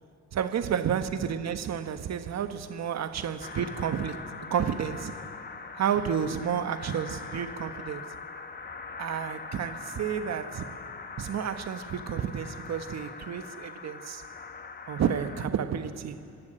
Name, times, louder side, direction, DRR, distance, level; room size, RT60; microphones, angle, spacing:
voice 1, 0.3-5.2 5.8-8.1 9.0-10.8 11.2-14.2 14.9-16.2, right 8 dB, 60° right, 1.3 m, -31 dB
sound 1, 3.4-15.5, left 5 dB, 30° left, 1.2 m, -42 dB
26.0 x 17.5 x 7.7 m
cardioid pair, 90°, 30 cm